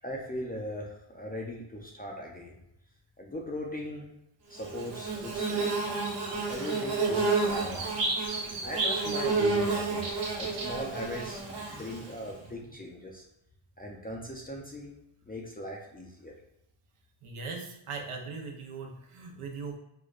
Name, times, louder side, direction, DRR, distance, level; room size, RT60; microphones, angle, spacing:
voice 1, 0.0-2.6 3.2-4.1 4.5-5.7 6.4-8.1 8.6-13.2 13.8-14.9 15.3-16.3, left 1 dB, 20° left, -1 dB, 0.3 m, -39 dB
Bird / Buzz, 4.6-12.3, right 3 dB, 55° right, 1.2 m, -30 dB
voice 2, 17.2-19.8, right 4 dB, 85° right, 2 dB, 0.8 m, -40 dB
4.6 x 2.1 x 2.4 m, 0.81 s
wide cardioid pair, 140°, 50 cm